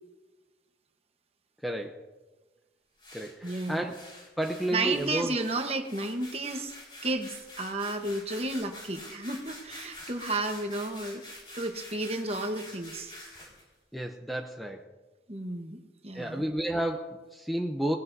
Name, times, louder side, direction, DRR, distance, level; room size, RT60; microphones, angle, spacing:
voice 1, 1.6-2.0 3.1-5.4 13.9-14.9 16.1-18.0, right 1 dB, ahead, 3 dB, 0.6 m, -32 dB
sound 1, 3.0-13.6, left 1 dB, 25° left, 4.7 m, -47 dB
voice 2, 3.4-3.9 4.7-6.7 7.0-11.2 11.5-13.1 15.3-16.4, right 2 dB, 35° right, 5 dB, 1.1 m, -32 dB
19.0 x 17.0 x 2.7 m, 1.2 s
head